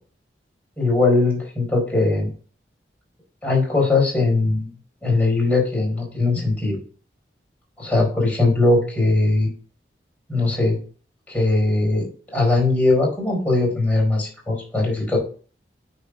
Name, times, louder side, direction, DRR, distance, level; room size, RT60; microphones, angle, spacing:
voice 1, 0.8-2.3 3.4-4.7 5.0-6.8 7.8-9.5 10.3-10.8 11.3-15.2, left 2 dB, 10° left, -3 dB, 4.5 m, -20 dB
10.0 x 4.4 x 3.8 m, 0.39 s
head